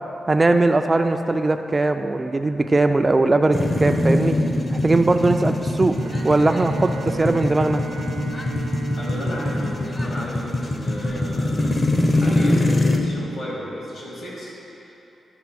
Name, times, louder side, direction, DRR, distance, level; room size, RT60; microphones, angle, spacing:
voice 1, 0.3-4.3 4.8-5.9 6.2-7.8, right 2 dB, 20° right, 6 dB, 0.3 m, -19 dB
sound 1, 3.5-13.0, left 1 dB, 25° left, 0.6 m, -23 dB
Bowed string instrument, 5.8-11.1, right 6 dB, 80° right, 0.5 m, -37 dB
voice 2, 8.9-11.7 12.1-15.1, equal, 65° left, -5 dB, 2.0 m, -34 dB
10.5 x 3.7 x 6.1 m, 3.0 s
cardioid pair, 110°, 0 cm